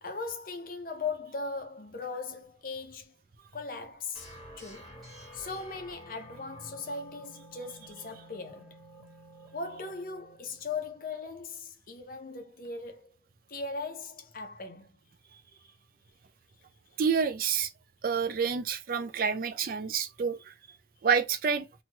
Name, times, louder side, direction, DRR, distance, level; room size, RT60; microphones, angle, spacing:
voice 1, 0.0-3.1 3.5-4.3 4.6-5.0 5.3-8.8 9.5-13.2 13.5-14.9, left 4 dB, 50° left, 0.7 m, -38 dB
sound 1, 4.1-11.1, equal, ahead, 1.3 m, -51 dB
voice 2, 17.0-17.7 18.0-20.5 21.0-21.7, right 6 dB, 50° right, 0.4 m, -28 dB
3.0 x 2.3 x 2.9 m
head